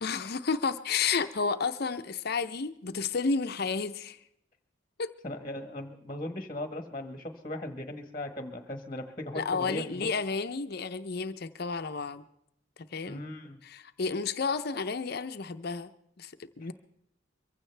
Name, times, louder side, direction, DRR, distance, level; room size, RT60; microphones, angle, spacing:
voice 1, 0.0-4.2 5.0-5.1 9.3-12.2 12.9-13.2 13.6-15.9 16.2-16.7, left 5 dB, 50° left, 11 dB, 0.6 m, -31 dB
voice 2, 5.2-10.1 13.0-13.6 16.6-16.7, left 1 dB, 25° left, 7 dB, 1.2 m, -38 dB
23.5 x 15.5 x 3.3 m, 0.76 s
head